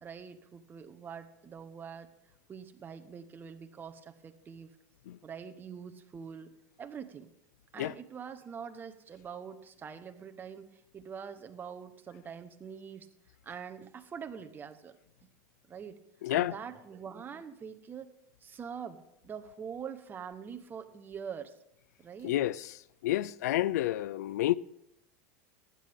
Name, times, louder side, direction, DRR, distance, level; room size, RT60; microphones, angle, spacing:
voice 1, 0.0-2.1 2.5-4.7 5.2-6.5 6.8-7.3 7.7-13.1 13.4-14.9 15.7-16.0 16.3-18.1 18.4-21.5 22.0-22.4, right 7 dB, 25° right, 1.0 m, -44 dB
voice 2, 16.2-16.5 22.2-22.7 23.0-24.5, left 14 dB, 90° left, 0.4 m, -29 dB
15.5 x 10.5 x 3.6 m
supercardioid pair, 130°, 9 cm